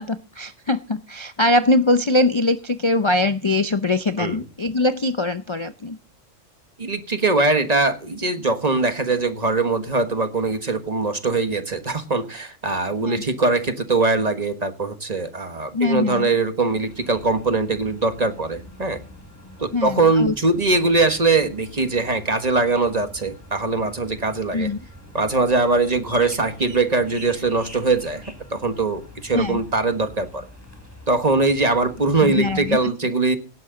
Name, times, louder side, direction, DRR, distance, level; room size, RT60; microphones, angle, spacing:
voice 1, 0.0-6.0 13.0-13.2 15.7-16.3 19.7-20.3 24.5-24.8 29.3-29.6 32.2-32.8, left 2 dB, 35° left, 11 dB, 0.4 m, -22 dB
voice 2, 6.8-19.0 19.6-24.7 25.1-28.2 28.5-30.4 31.1-33.4, right 3 dB, 30° right, 8 dB, 1.4 m, -21 dB
sound 1, 16.7-32.8, left 1 dB, 10° left, 3.6 m, -44 dB
17.5 x 11.0 x 3.9 m, 0.36 s
omnidirectional pair, 1.3 m